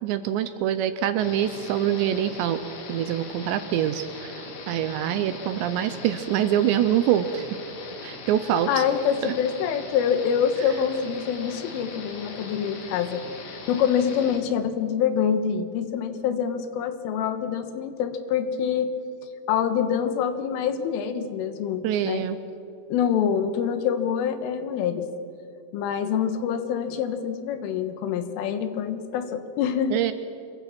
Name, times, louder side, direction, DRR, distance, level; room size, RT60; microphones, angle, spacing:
voice 1, 0.0-2.6 2.9-7.5 8.0-8.9 9.2-9.3 21.8-22.4 29.9-30.1, right 10 dB, 80° right, 10 dB, 2.7 m, -25 dB
sound 1, 1.2-14.4, left 3 dB, 55° left, 3.9 m, -40 dB
voice 2, 8.7-18.9 19.5-22.3 22.9-25.1 25.7-30.0, left 8 dB, 80° left, 9 dB, 3.8 m, -26 dB
26.5 x 22.0 x 6.1 m, 2.7 s
omnidirectional pair, 5.7 m